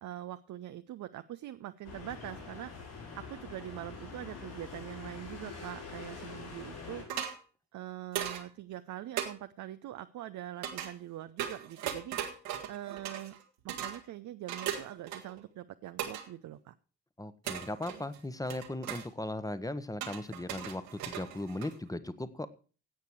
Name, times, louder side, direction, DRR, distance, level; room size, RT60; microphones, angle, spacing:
voice 1, 0.0-2.7 3.1-7.0 7.7-12.3 12.7-13.4 13.6-16.7, right 13 dB, 50° right, 10 dB, 0.7 m, -43 dB
sound 1, 1.8-7.0, left 4 dB, 70° left, 7.0 m, -45 dB
sound 2, 7.1-7.4 8.1-8.4 9.2-9.3 10.6-10.9 11.4-13.4 13.7-14.0 14.5-15.4 16.0-16.3 17.4-18.2 18.5-19.1 20.0-21.9, right 9 dB, 70° right, 1.7 m, -38 dB
voice 2, 17.2-22.5, left 1 dB, 10° left, 13 dB, 1.2 m, -38 dB
17.0 x 8.3 x 4.7 m, 0.38 s
figure-of-eight pair, 40°, 39 cm